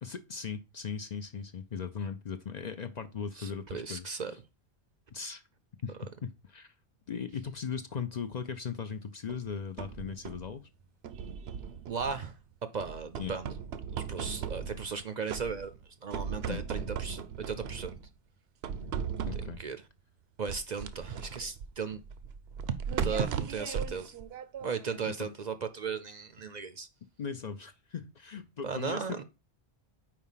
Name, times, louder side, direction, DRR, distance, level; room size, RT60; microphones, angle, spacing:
voice 1, 0.0-4.4 5.1-5.4 5.8-6.7 7.1-10.7 13.2-13.4 16.5-16.6 19.3-19.6 25.0-25.1 27.2-29.2, left 6 dB, 50° left, 0.6 m, -38 dB
voice 2, 3.4-4.3 11.9-12.3 12.7-13.5 13.9-15.7 16.0-18.0 19.6-19.8 20.4-22.0 23.0-24.1 24.6-26.9 28.6-29.2, right 5 dB, 50° right, 0.6 m, -36 dB
sound 1, 9.3-10.5 11.0-12.4 12.8-15.0 15.3-15.8 16.1-18.1 18.6-19.7 20.5-25.0, right 7 dB, 75° right, 0.8 m, -37 dB
4.7 x 4.7 x 5.6 m
omnidirectional pair, 1.1 m